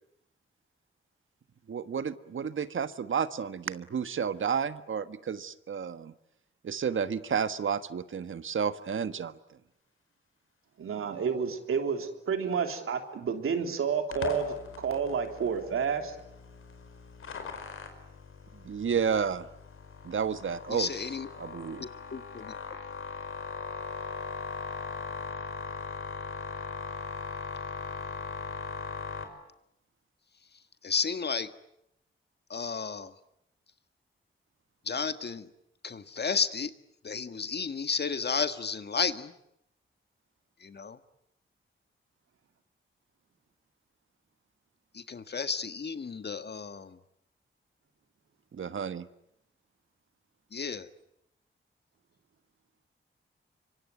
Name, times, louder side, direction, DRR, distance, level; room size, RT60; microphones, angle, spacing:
voice 1, 1.7-6.1 6.6-9.4 18.6-19.5 20.0-20.9 21.4-21.8 48.5-49.1, right 7 dB, 70° right, 12 dB, 1.4 m, -31 dB
voice 2, 10.8-16.2, right 6 dB, 90° right, 6 dB, 3.3 m, -30 dB
sound 1, 14.1-29.2, left 4 dB, 80° left, 4.9 m, -39 dB
voice 3, 20.7-21.3 21.8-22.5 30.8-31.5 32.5-33.1 34.8-35.5 35.8-36.7 37.0-39.3 40.6-41.0 44.9-47.0 50.5-50.9, left 5 dB, 50° left, 11 dB, 1.7 m, -32 dB
25.0 x 25.0 x 9.4 m, 0.78 s
cardioid pair, 80°, 21 cm